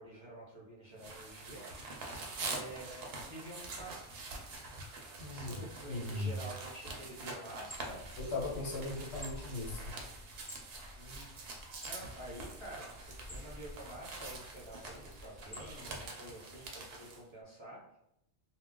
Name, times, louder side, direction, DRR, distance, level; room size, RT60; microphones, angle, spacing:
voice 1, 0.0-4.2 5.3-8.1 10.9-11.3 11.8-18.0, right 1 dB, 30° right, -7 dB, 0.6 m, -49 dB
sound 1, 1.0-17.2, right 3 dB, 65° right, 0.8 m, -46 dB
voice 2, 5.2-6.4 8.2-9.9, left 2 dB, 70° left, -3 dB, 1.0 m, -38 dB
sound 2, 7.6-16.1, left 1 dB, 15° left, 0.9 m, -50 dB
2.4 x 2.1 x 3.6 m, 0.79 s
omnidirectional pair, 1.2 m